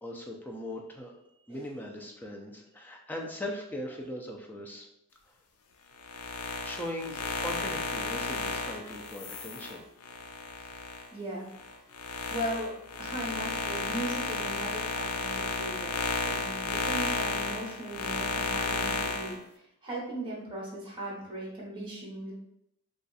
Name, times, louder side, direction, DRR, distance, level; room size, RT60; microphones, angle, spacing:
voice 1, 0.0-1.1 1.5-4.9 6.6-9.8, left 1 dB, 10° left, 0 dB, 0.4 m, -39 dB
sound 1, 6.0-11.1 11.5-19.4, left 4 dB, 70° left, 0.4 m, -33 dB
voice 2, 11.1-11.5 12.3-12.7 13.0-22.3, right 1 dB, 25° right, -4 dB, 1.0 m, -38 dB
2.5 x 2.4 x 3.9 m, 0.80 s
head